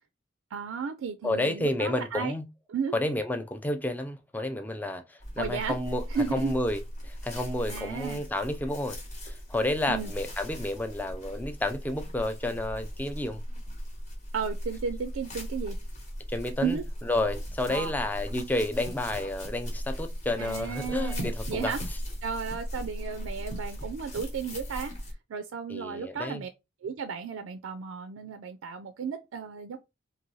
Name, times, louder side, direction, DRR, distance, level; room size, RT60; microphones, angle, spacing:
voice 1, 0.5-2.3 2.7-2.9 5.4-5.8 6.1-6.6 7.7-8.2 9.9-10.1 14.3-15.8 16.6-16.8 17.7-17.9 20.4-21.8 22.2-24.9 25.3-26.5 26.8-29.8, right 6 dB, 90° right, 0.4 m, -34 dB
voice 2, 1.2-2.5 2.9-6.0 6.3-9.0 9.2-13.4 16.3-16.8 17.1-22.0 25.7-26.5, left 1 dB, 10° left, 0.3 m, -31 dB
sound 1, 5.2-25.1, equal, 35° left, 1.0 m, -38 dB
2.6 x 2.6 x 3.0 m
head